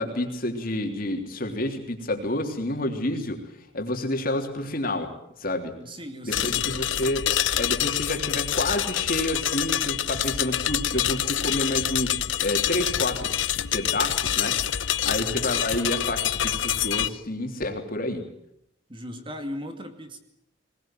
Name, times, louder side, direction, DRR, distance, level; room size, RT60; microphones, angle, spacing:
voice 1, 0.0-3.4 3.7-5.1 5.4-5.7 6.2-7.3 7.5-13.4 13.7-18.2, left 1 dB, 50° left, 4 dB, 3.4 m, -29 dB
voice 2, 5.8-6.9 15.1-15.5 18.9-20.2, equal, 25° right, 7 dB, 2.4 m, -38 dB
sound 1, 6.3-17.1, left 11 dB, 85° left, 0.8 m, -26 dB
21.5 x 20.0 x 9.2 m, 0.78 s
head